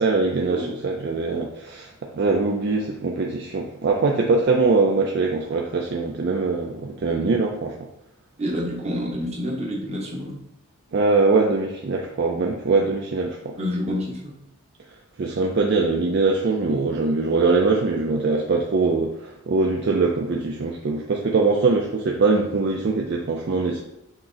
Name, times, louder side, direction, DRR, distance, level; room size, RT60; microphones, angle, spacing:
voice 1, 0.0-7.8 10.9-13.6 15.2-23.8, right 3 dB, 50° right, 0 dB, 0.4 m, -22 dB
voice 2, 8.4-10.3 13.6-14.3, equal, 30° right, -3 dB, 0.9 m, -28 dB
5.9 x 2.1 x 3.8 m, 0.84 s
head